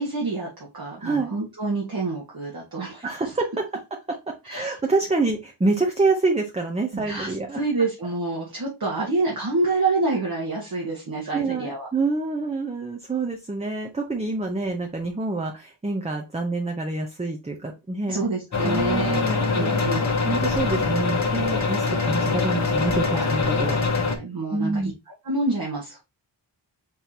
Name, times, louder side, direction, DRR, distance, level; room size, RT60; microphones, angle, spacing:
voice 1, 0.0-3.0 4.4-4.8 6.9-11.9 18.1-19.2 19.5-20.0 23.1-23.3 24.2-24.9 25.2-26.0, right 3 dB, 50° right, -3 dB, 1.4 m, -27 dB
voice 2, 1.0-1.3 3.0-3.6 4.1-7.6 11.3-18.2 18.6-19.8 20.3-23.8 24.5-24.9, right 3 dB, 15° right, 2 dB, 0.6 m, -27 dB
sound 1, 18.5-24.2, left 4 dB, 35° left, 0.9 m, -23 dB
4.5 x 3.7 x 2.7 m, 0.26 s
wide cardioid pair, 100°, 46 cm